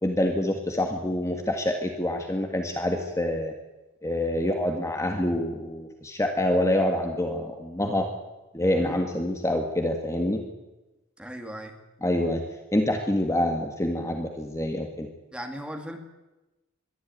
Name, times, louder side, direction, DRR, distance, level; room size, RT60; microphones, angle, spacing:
voice 1, 0.0-3.5 4.0-8.1 8.5-10.4 12.0-12.4 12.7-15.1, left 1 dB, 15° left, 4 dB, 1.7 m, -26 dB
voice 2, 11.2-11.7 15.3-16.0, equal, 5° right, 4 dB, 2.4 m, -37 dB
22.0 x 13.5 x 9.3 m, 1.0 s
head